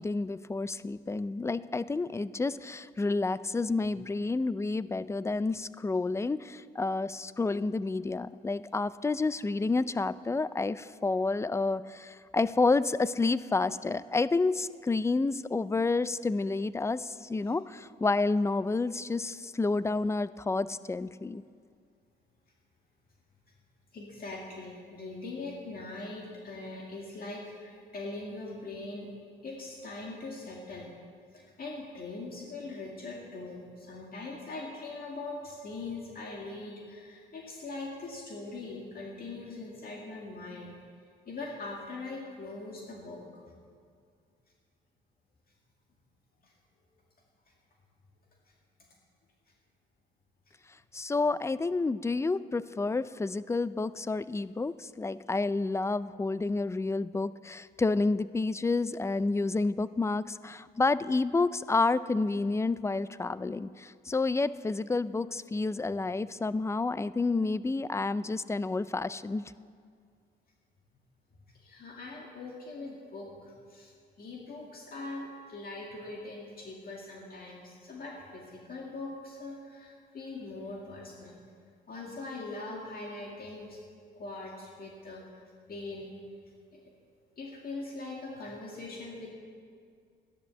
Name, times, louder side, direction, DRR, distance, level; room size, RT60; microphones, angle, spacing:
voice 1, 0.0-21.4 50.9-69.4, left 3 dB, 15° left, 16 dB, 0.4 m, -29 dB
voice 2, 23.9-29.1 29.4-30.9 31.3-40.7 41.3-43.6 46.4-46.5 71.5-81.4 81.9-83.8 84.1-85.4 85.7-86.1 86.7-86.8 87.4-89.3, left 2 dB, 50° left, -2 dB, 2.2 m, -41 dB
13.0 x 10.5 x 7.1 m, 2.2 s
cardioid pair, 90°, 20 cm